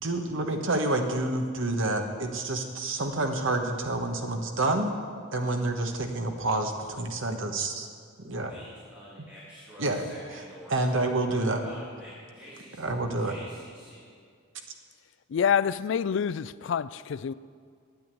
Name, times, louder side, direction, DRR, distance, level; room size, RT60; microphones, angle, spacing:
voice 1, 0.0-5.0 5.3-7.9 8.2-8.5 9.8-10.0 10.7-11.6 12.8-13.3, right 2 dB, 65° right, 1.3 m, -28 dB
voice 2, 8.3-12.8 13.2-14.1, equal, 5° right, 2.2 m, -48 dB
voice 3, 15.3-17.3, left 7 dB, 60° left, 0.3 m, -27 dB
9.5 x 8.7 x 9.2 m
head